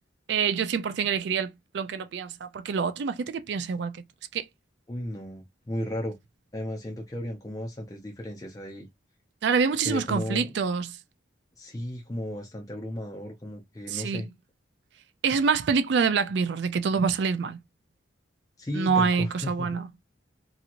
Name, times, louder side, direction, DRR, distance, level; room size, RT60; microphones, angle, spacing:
voice 1, 0.3-4.0 4.3-4.5 9.4-10.9 13.9-14.3 15.2-17.6 18.7-19.9, right 5 dB, 65° right, 0.4 m, -26 dB
voice 2, 4.9-6.2 6.5-8.9 9.8-10.5 11.6-14.3 18.6-19.8, left 1 dB, 20° left, 0.5 m, -34 dB
2.9 x 2.7 x 2.4 m
head